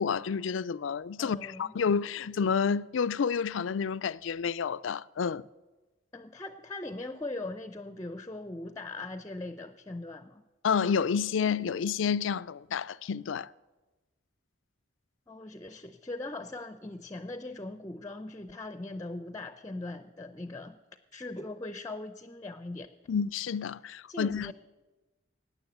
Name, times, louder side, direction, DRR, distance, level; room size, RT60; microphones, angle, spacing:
voice 1, 0.0-5.4 10.6-13.5 23.1-24.5, left 6 dB, 80° left, 0.4 m, -29 dB
voice 2, 1.2-1.7 6.1-10.4 15.3-20.8 21.1-22.9 24.1-24.5, left 2 dB, 15° left, 0.5 m, -40 dB
17.5 x 9.7 x 7.9 m
head